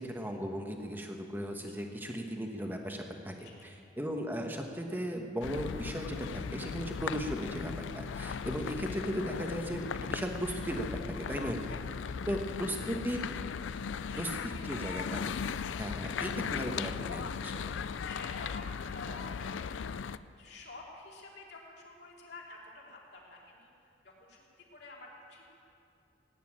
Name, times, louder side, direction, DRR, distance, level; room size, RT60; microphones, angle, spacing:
voice 1, 0.0-10.9 11.2-11.7 12.3-13.2 14.2-15.2 15.8-17.6, equal, 10° right, 3 dB, 1.2 m, -37 dB
voice 2, 3.4-3.7 11.8-12.2 12.7-12.9 13.9-14.9 18.0-19.8 20.3-23.7 24.0-25.4, left 3 dB, 60° left, -2 dB, 2.9 m, -50 dB
sound 1, 5.4-20.2, left 6 dB, 85° left, 0.4 m, -37 dB
17.0 x 9.4 x 8.8 m, 2.6 s
head